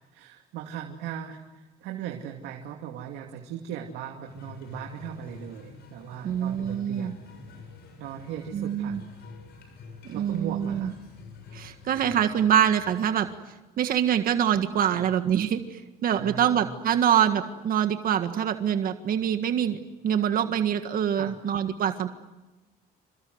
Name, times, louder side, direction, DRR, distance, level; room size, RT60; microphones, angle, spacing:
voice 1, 0.1-7.3 8.0-9.0 10.1-11.0 14.9-15.1 16.1-16.7 21.2-21.4, right 9 dB, 90° right, 2 dB, 2.6 m, -38 dB
sound 1, 4.2-13.4, left 4 dB, 70° left, 7.4 m, -47 dB
voice 2, 6.2-7.1 8.5-9.0 10.1-10.9 11.5-13.3 13.8-22.1, right 9 dB, 60° right, 8 dB, 1.8 m, -25 dB
28.0 x 26.5 x 8.0 m, 1.1 s
cardioid pair, 110°, 17 cm